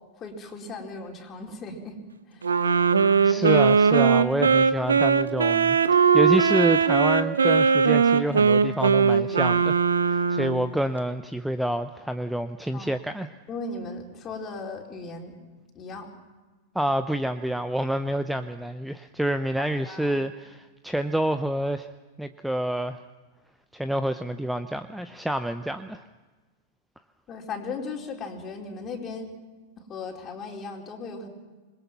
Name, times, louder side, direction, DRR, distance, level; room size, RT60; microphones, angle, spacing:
voice 1, 0.2-2.0 2.3-2.5 12.7-12.9 13.5-15.4 15.7-16.1 19.9-20.2 27.3-29.3 29.9-31.3, left 3 dB, 30° left, 1 dB, 4.4 m, -37 dB
Wind instrument woodwind instrument, 2.4-10.7, right 6 dB, 75° right, 1.1 m, -20 dB
voice 2, 3.2-9.8 10.1-13.3 16.7-21.9 22.2-23.0 23.7-26.0, right 1 dB, 5° right, 10 dB, 0.8 m, -28 dB
27.0 x 21.5 x 6.0 m, 1.3 s
figure-of-eight pair, 95°, 0 cm